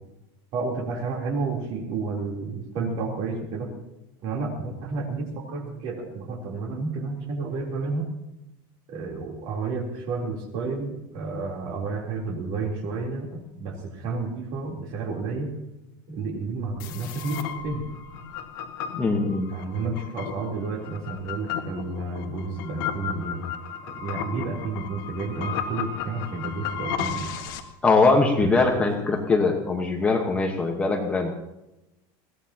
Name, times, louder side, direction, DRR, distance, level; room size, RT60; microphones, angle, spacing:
voice 1, 0.5-3.7 4.2-8.1 8.9-15.5 16.1-17.8 19.5-23.4 23.8-27.3 28.7-28.9, right 3 dB, 45° right, 0 dB, 3.4 m, -31 dB
sound 1, 16.8-27.6, left 7 dB, 70° left, 1.8 m, -34 dB
voice 2, 19.0-19.5 27.8-31.3, left 3 dB, 10° left, 2 dB, 1.2 m, -21 dB
21.0 x 16.5 x 2.9 m, 0.93 s
supercardioid pair, 175°, 12 cm